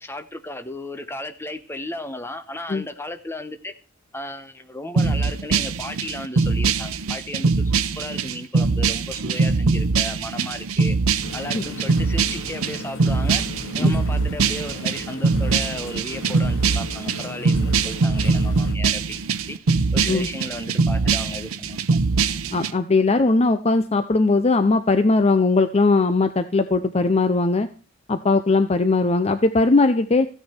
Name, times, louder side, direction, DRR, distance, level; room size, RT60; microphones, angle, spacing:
voice 1, 0.0-3.7 4.1-11.0 11.3-19.2 19.5-19.6 19.9-22.0, left 1 dB, 10° left, 8 dB, 1.0 m, -35 dB
sound 1, 5.0-22.7, right 4 dB, 90° right, 0.7 m, -22 dB
sound 2, 11.2-18.7, left 2 dB, 65° left, 0.9 m, -37 dB
voice 2, 22.5-27.7 28.1-30.3, left 3 dB, 30° left, 9 dB, 0.6 m, -19 dB
15.0 x 9.5 x 4.4 m, 0.39 s
head